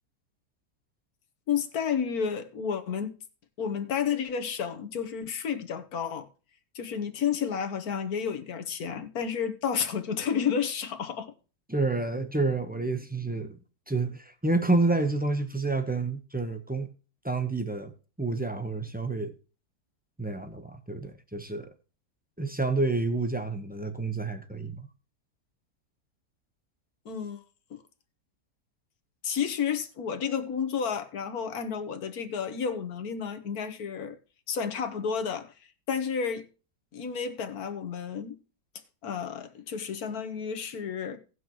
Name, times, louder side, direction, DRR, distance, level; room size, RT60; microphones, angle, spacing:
voice 1, 1.5-3.1 3.6-6.3 6.7-11.3 27.0-27.4 27.7-27.8 29.2-34.2 34.5-35.5 35.9-36.4 36.9-38.3 39.0-41.2, left 7 dB, 65° left, 1.7 m, -31 dB
voice 2, 11.7-13.6 13.9-16.9 17.2-17.9 18.2-19.3 20.2-21.7 22.4-24.9, right 3 dB, 10° right, 0.5 m, -29 dB
18.0 x 6.2 x 3.0 m
omnidirectional pair, 1.8 m